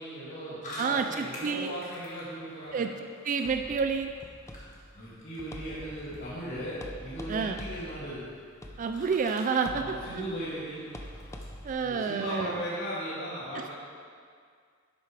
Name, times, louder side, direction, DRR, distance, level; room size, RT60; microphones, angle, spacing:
voice 1, 0.0-2.9 4.9-8.2 9.6-10.8 11.8-13.7, equal, 60° left, -12 dB, 2.5 m, -37 dB
sound 1, 0.6-12.9, left 1 dB, 35° left, 1.8 m, -50 dB
voice 2, 0.8-1.8 2.7-2.9 3.2-4.1 7.3-7.6 8.8-10.0 11.6-12.6 13.5-13.7, right 5 dB, 40° right, 6 dB, 0.3 m, -29 dB
sound 2, 3.4-11.7, left 1 dB, 15° left, 0.6 m, -46 dB
11.0 x 8.4 x 3.4 m, 2.1 s
head